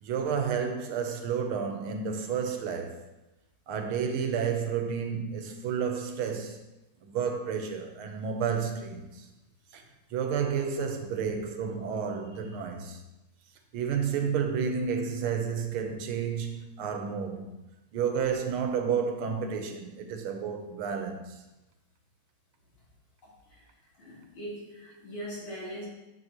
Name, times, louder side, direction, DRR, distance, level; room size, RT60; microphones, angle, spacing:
voice 1, 0.0-3.0 3.7-6.6 7.0-9.2 9.7-9.8 10.1-13.0 13.7-17.4 17.9-21.3, right 6 dB, 85° right, 1.7 m, -31 dB
voice 2, 23.2-23.7 24.0-25.9, equal, 75° left, 4.1 m, -41 dB
10.5 x 6.8 x 3.0 m
omnidirectional pair, 2.3 m